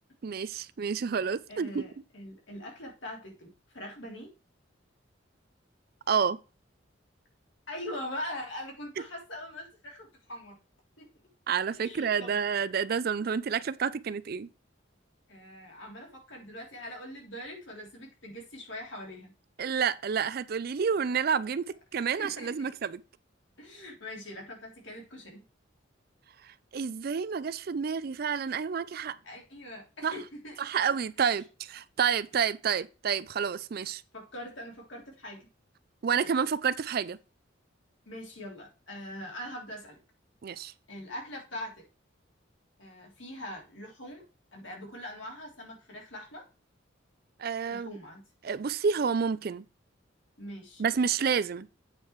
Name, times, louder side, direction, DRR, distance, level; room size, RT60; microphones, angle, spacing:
voice 1, 0.2-1.8 6.1-6.4 11.5-14.5 19.6-23.0 26.4-29.2 30.0-30.1 30.6-34.0 36.0-37.2 40.4-40.7 47.4-48.0 48.4-49.6 50.8-51.7, right 6 dB, 50° right, 0.4 m, -29 dB
voice 2, 1.5-4.3 7.7-10.6 11.0-11.1 11.7-12.3 15.3-19.3 22.2-22.7 23.6-25.4 29.2-30.6 32.3-32.4 34.1-35.5 38.0-40.0 40.9-41.8 42.8-44.2 44.5-46.4 47.7-48.2 50.4-50.8, left 1 dB, 70° left, 3.3 m, -42 dB
8.3 x 4.8 x 4.6 m
head